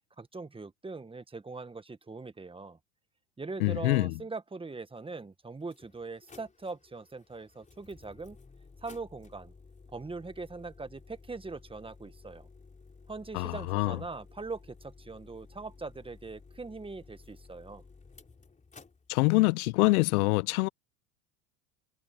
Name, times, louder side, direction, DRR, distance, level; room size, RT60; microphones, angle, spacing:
voice 1, 0.2-2.8 3.4-8.4 8.8-9.5 9.9-12.5 13.1-17.8, right 3 dB, 10° right, 1.6 m, -41 dB
voice 2, 3.6-4.1 13.3-14.0 19.1-20.7, left 24 dB, 70° left, 0.7 m, -25 dB
sound 1, 5.0-5.1 5.6-19.2, left 4 dB, 15° left, 3.7 m, -55 dB
hypercardioid pair, 100°, 46 cm